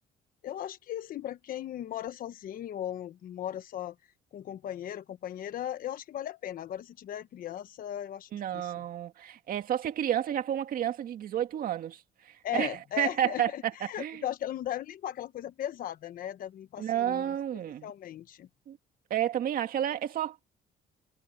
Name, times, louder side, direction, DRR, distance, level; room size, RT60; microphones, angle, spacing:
voice 1, 0.4-3.9 4.3-8.7 12.4-13.6 13.9-17.2 17.8-18.5, left 11 dB, 55° left, 1.1 m, -37 dB
voice 2, 8.3-14.2 16.8-17.9 18.7-18.8 19.1-20.4, right 10 dB, 55° right, 2.0 m, -31 dB
cardioid pair, 110°, 17 cm